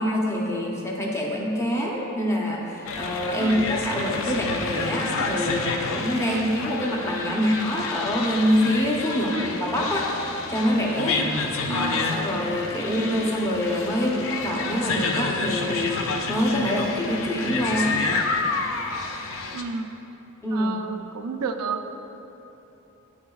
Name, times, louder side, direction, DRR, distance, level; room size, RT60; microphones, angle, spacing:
voice 1, 0.0-10.1 10.5-11.2 11.7-17.9 20.4-20.8, equal, 15° left, -3 dB, 0.7 m, -25 dB
sound 1, 2.9-19.6, left 4 dB, 60° left, 0.5 m, -29 dB
voice 2, 3.4-3.7 6.3-6.6 9.3-9.5 11.1-11.4 11.7-12.0 12.8-13.2 19.5-19.9 20.5-22.0, right 4 dB, 80° right, 6 dB, 0.4 m, -31 dB
11.0 x 4.0 x 2.3 m, 3.0 s
head